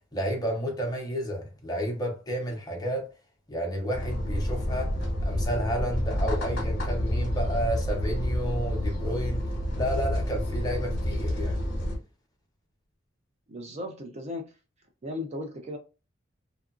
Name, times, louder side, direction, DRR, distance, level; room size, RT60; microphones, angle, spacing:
voice 1, 0.1-3.1 3.5-4.9 5.2-9.4 9.7-11.6, equal, 20° left, 0.8 m, -31 dB
sound 1, 3.9-12.0, equal, 55° left, 1.0 m, -29 dB
voice 2, 13.5-14.6 15.0-15.8, left 1 dB, 35° right, 0.4 m, -36 dB
2.8 x 2.4 x 2.4 m
head